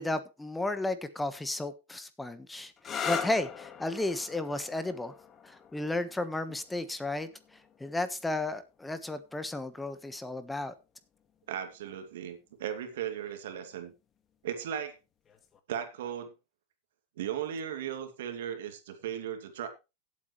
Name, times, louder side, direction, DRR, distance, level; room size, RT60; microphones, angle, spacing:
voice 1, 0.0-2.7 3.0-5.1 5.4-7.3 7.8-10.7, left 2 dB, 10° left, 1.3 m, -33 dB
sound 1, 2.8-10.2 11.2-11.7 15.2-15.6, left 7 dB, 30° left, 1.9 m, -42 dB
voice 2, 11.5-13.9 14.4-15.0 15.7-16.3 17.2-19.7, right 9 dB, 80° right, 2.5 m, -36 dB
16.5 x 8.4 x 3.2 m
hypercardioid pair, 115°, 0 cm